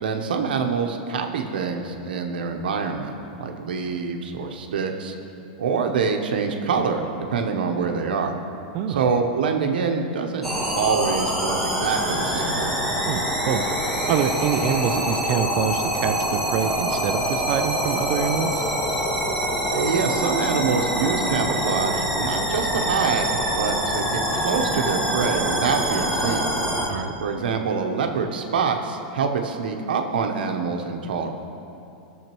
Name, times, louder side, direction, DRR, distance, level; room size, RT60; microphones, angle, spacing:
voice 1, 0.0-3.1 3.4-5.1 5.6-8.4 8.9-10.5 10.7-12.7 19.7-26.5 27.2-31.3, right 5 dB, 90° right, 4 dB, 0.9 m, -25 dB
voice 2, 8.7-9.1 13.1-13.6 14.1-18.7 26.9-27.2, right 8 dB, 40° right, 9 dB, 0.4 m, -26 dB
sound 1, 10.4-26.9, equal, ahead, 1.2 m, -25 dB
15.0 x 6.5 x 3.0 m, 2.7 s
supercardioid pair, 155°, 5 cm